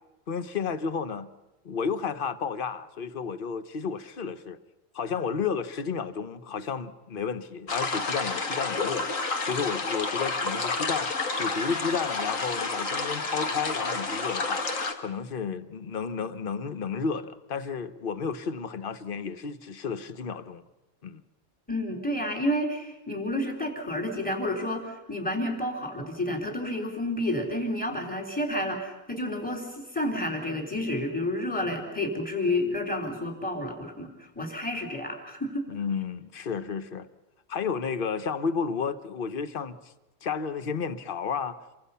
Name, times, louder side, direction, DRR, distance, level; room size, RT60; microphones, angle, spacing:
voice 1, 0.3-1.3 1.6-4.6 4.9-9.1 9.4-14.6 15.0-20.6 21.0-21.2 35.7-37.1 37.5-39.9 40.2-41.6, left 6 dB, 45° left, 1.1 m, -32 dB
sound 1, 7.7-14.9, left 3 dB, 80° left, 2.1 m, -30 dB
voice 2, 21.7-35.6, left 1 dB, 5° left, 3.6 m, -30 dB
28.0 x 24.0 x 5.7 m
omnidirectional pair, 1.4 m